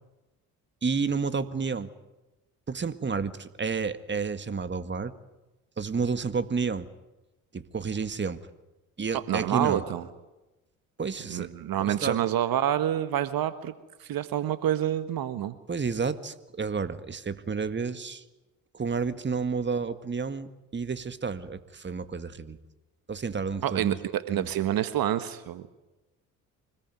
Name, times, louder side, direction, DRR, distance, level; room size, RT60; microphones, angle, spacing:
voice 1, 0.8-1.9 2.7-5.1 5.8-6.9 7.5-8.4 9.0-9.8 11.0-11.5 11.8-12.2 15.7-18.2 18.7-22.6 23.1-24.0 24.3-24.5, right 5 dB, 25° right, 12 dB, 1.8 m, -30 dB
voice 2, 9.1-10.1 11.3-13.7 14.0-15.6 23.6-25.7, right 11 dB, 55° right, 12 dB, 1.5 m, -28 dB
25.5 x 20.5 x 9.5 m, 1.0 s
hypercardioid pair, 55°, 41 cm